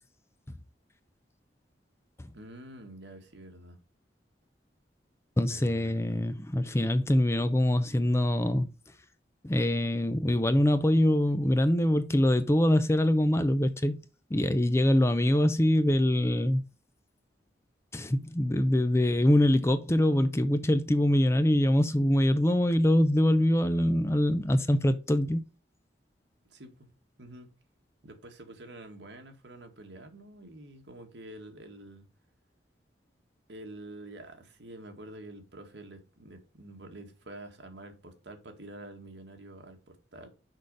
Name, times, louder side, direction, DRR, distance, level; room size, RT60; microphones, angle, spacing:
voice 1, 2.3-3.8 5.5-6.2 26.5-26.9 27.2-27.5 28.0-32.1 33.5-40.3, right 1 dB, 70° right, 1.7 m, -47 dB
voice 2, 5.4-8.7 9.4-14.0 14.3-16.6 17.9-25.4, left 1 dB, 15° left, 0.5 m, -24 dB
6.3 x 5.1 x 5.3 m
head